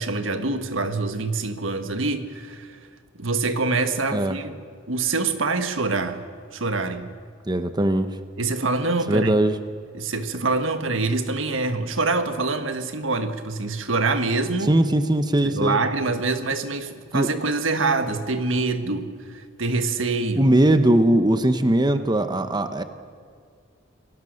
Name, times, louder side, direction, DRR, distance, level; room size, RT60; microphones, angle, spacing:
voice 1, 0.0-2.8 3.1-4.6 4.9-6.2 6.5-7.1 8.4-9.3 9.9-14.7 15.4-20.5, right 3 dB, 90° right, 8 dB, 1.6 m, -25 dB
voice 2, 7.5-8.1 9.1-9.6 14.7-15.8 17.1-17.3 20.4-22.8, right 1 dB, 20° right, 9 dB, 1.0 m, -20 dB
27.5 x 18.0 x 6.5 m, 2.1 s
head